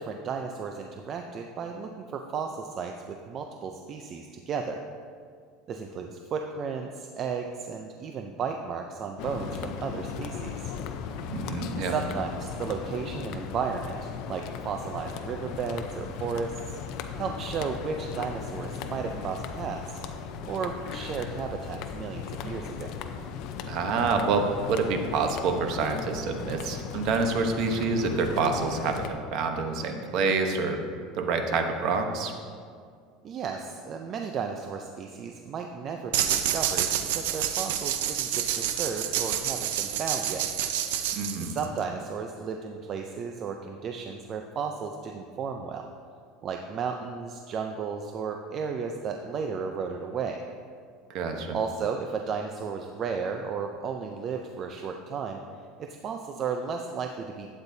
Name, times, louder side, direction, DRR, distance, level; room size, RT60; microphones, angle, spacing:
voice 1, 0.0-4.8 5.7-10.7 11.8-16.8 17.2-20.0 20.5-23.0 33.2-40.5 41.4-45.9 46.4-50.4 51.5-55.4 55.8-57.5, right 5 dB, 35° right, 4 dB, 0.5 m, -34 dB
sound 1, 9.2-29.1, left 6 dB, 55° left, 0.6 m, -37 dB
voice 2, 11.3-12.0 23.7-30.8 31.1-32.3 41.1-41.5 51.1-51.6, right 4 dB, 55° right, 5 dB, 1.0 m, -27 dB
sound 2, 36.1-41.8, right 10 dB, 90° right, 0.6 m, -28 dB
12.0 x 8.8 x 2.7 m, 2.1 s
supercardioid pair, 145°, 0 cm